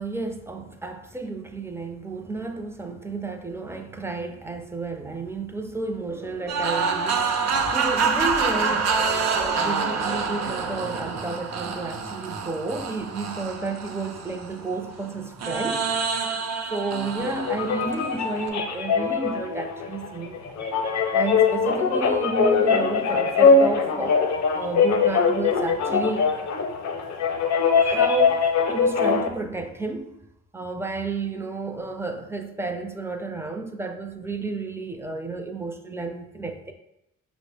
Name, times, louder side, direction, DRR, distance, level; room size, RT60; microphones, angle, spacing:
voice 1, 0.0-9.1 9.3-16.2 16.7-20.5 21.1-24.2 24.5-26.3 27.8-30.2 30.5-36.7, right 3 dB, 10° right, 5 dB, 0.4 m, -32 dB
sound 1, 6.1-11.1, right 2 dB, 45° right, 0.9 m, -38 dB
sound 2, 6.5-14.8 15.4-18.5, right 5 dB, 60° right, 0.6 m, -27 dB
sound 3, 17.2-29.3, left 5 dB, 65° left, 0.6 m, -22 dB
5.9 x 2.0 x 3.3 m, 0.84 s
cardioid pair, 90°, 30 cm